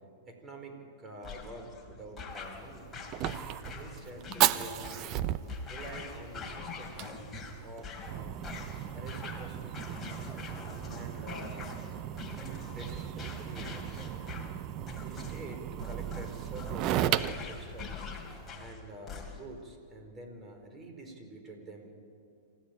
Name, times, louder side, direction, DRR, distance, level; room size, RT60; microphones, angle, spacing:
voice 1, 0.3-3.0 3.7-5.0 5.7-7.0 7.6-8.4 8.9-9.8 10.9-12.0 12.7-14.1 15.0-18.1 18.6-21.9, right 2 dB, 20° right, 4 dB, 4.9 m, -47 dB
sound 1, 1.2-19.6, left 4 dB, 15° left, 3.7 m, -44 dB
Fire, 2.3-18.5, right 13 dB, 40° right, 0.8 m, -36 dB
27.5 x 15.5 x 8.9 m, 2.5 s
hypercardioid pair, 125°, 0 cm